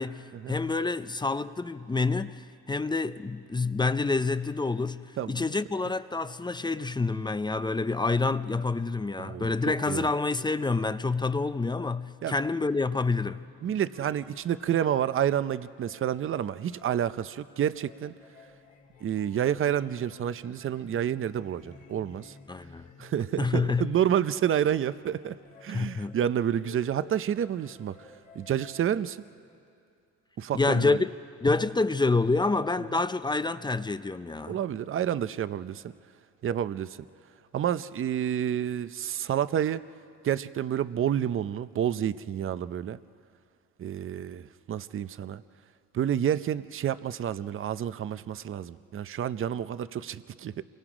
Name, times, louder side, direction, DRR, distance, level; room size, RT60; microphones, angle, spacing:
voice 1, 0.0-13.4 22.5-22.8 23.4-23.9 25.7-26.2 30.5-31.1 31.4-34.6, left 3 dB, 15° left, 0.5 m, -28 dB
voice 2, 9.2-10.1 12.2-12.3 13.6-18.1 19.0-22.3 23.0-25.4 25.6-27.9 28.4-29.2 30.4-31.0 34.5-35.9 36.4-37.0 37.5-39.8 40.2-43.0 43.8-45.4 45.9-50.6, right 10 dB, 45° right, 0.6 m, -29 dB
sound 1, 13.3-29.4, left 5 dB, 90° left, 3.1 m, -54 dB
28.0 x 23.0 x 5.0 m
cardioid pair, 90°, 30 cm